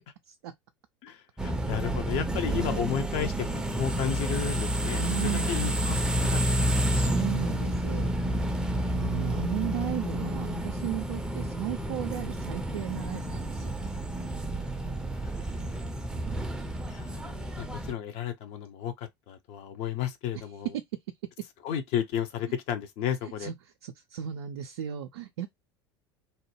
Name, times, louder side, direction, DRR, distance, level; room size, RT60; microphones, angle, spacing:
voice 1, 1.0-6.4 6.9-7.1 15.0-15.7 16.9-20.7 21.6-23.5, left 8 dB, 50° left, 0.7 m, -33 dB
sound 1, 1.4-17.9, right 1 dB, 5° right, 0.5 m, -30 dB
voice 2, 5.0-5.5 6.9-8.1 8.7-13.8 16.1-16.6 20.3-20.4 20.7-20.8 23.2-23.5 23.8-25.5, right 12 dB, 65° right, 0.4 m, -35 dB
2.7 x 2.1 x 3.1 m
figure-of-eight pair, 75°, 14 cm